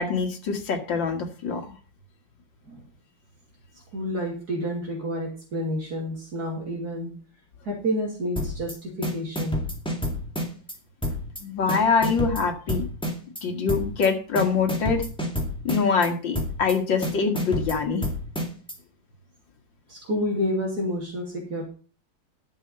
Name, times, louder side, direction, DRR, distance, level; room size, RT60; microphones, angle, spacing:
voice 1, 0.0-1.6 11.4-12.8 13.4-15.1 15.6-18.1, left 5 dB, 80° left, 4 dB, 2.5 m, -24 dB
voice 2, 3.9-7.1 7.6-9.6 19.9-21.6, equal, 55° right, -1 dB, 3.2 m, -29 dB
sound 1, 8.4-8.7 9.0-10.7 11.0-11.4 11.7-13.4 13.7-14.1 14.4-16.1 16.3-16.7 17.0-18.7, equal, 5° left, 2.0 m, -29 dB
11.0 x 6.6 x 5.5 m, 0.39 s
omnidirectional pair, 2.0 m